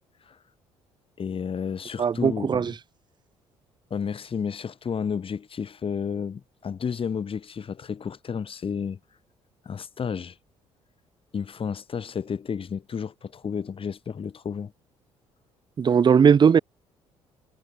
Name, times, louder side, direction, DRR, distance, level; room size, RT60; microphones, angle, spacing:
voice 1, 1.2-2.7 3.9-9.0 9.6-10.3 11.3-14.7, left 6 dB, 40° left, 1.6 m, -31 dB
voice 2, 2.0-2.7 15.8-16.6, right 7 dB, 30° right, 0.5 m, -18 dB
hypercardioid pair, 50°, 15 cm